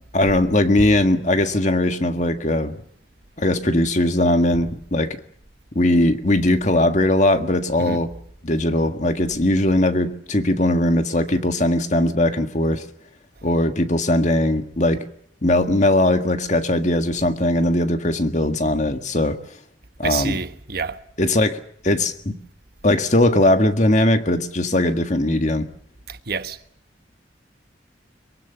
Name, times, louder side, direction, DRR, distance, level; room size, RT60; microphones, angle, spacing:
voice 1, 0.1-2.8 3.4-5.2 5.8-8.1 8.4-12.8 13.4-15.0 15.4-19.4 20.0-20.4 21.2-22.4 22.8-25.7, left 1 dB, 40° left, 1.7 m, -19 dB
voice 2, 20.0-21.0 26.1-26.6, right 5 dB, 55° right, 1.2 m, -28 dB
23.5 x 23.0 x 6.9 m
head